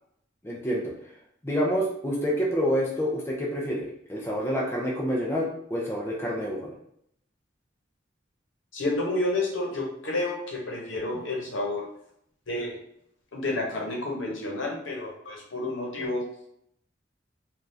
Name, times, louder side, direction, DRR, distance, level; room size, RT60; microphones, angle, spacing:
voice 1, 0.4-0.9 1.4-6.7, equal, 10° left, -3 dB, 0.5 m, -28 dB
voice 2, 8.7-11.8 12.5-12.8 13.3-16.2, left 2 dB, 80° left, -2 dB, 0.9 m, -30 dB
3.4 x 2.4 x 2.6 m, 0.71 s
head